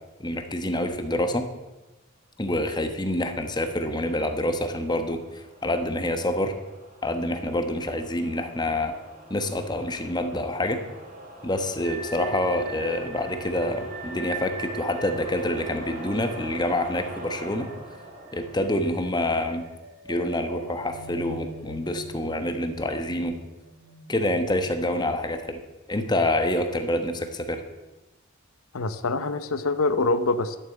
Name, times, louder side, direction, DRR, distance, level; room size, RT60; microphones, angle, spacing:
voice 1, 0.2-1.5 2.4-6.5 7.0-8.9 9.3-10.8 11.4-17.7 18.3-19.6 20.1-23.4 24.1-25.6 25.9-27.6, left 1 dB, 20° left, 7 dB, 1.1 m, -27 dB
sound 1, 3.4-19.7, right 2 dB, 40° right, 2.5 m, -44 dB
sound 2, 11.8-18.7 18.9-19.1 19.6-25.0, right 3 dB, 70° right, 2.5 m, -41 dB
voice 2, 28.7-30.6, left 3 dB, 90° left, 12 dB, 0.8 m, -25 dB
12.5 x 7.3 x 8.0 m, 1.1 s
head